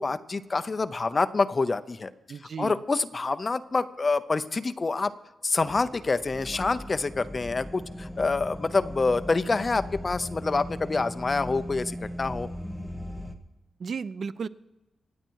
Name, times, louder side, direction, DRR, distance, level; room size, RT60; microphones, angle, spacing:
voice 1, 0.0-2.1 2.6-5.1 5.4-12.5, left 3 dB, 25° left, 12 dB, 0.6 m, -27 dB
voice 2, 2.3-2.8 13.8-14.5, right 5 dB, 45° right, 15 dB, 0.5 m, -34 dB
sound 1, 5.6-13.3, equal, ahead, 1.1 m, -38 dB
25.0 x 8.9 x 4.7 m, 1.0 s
wide cardioid pair, 150°, 0 cm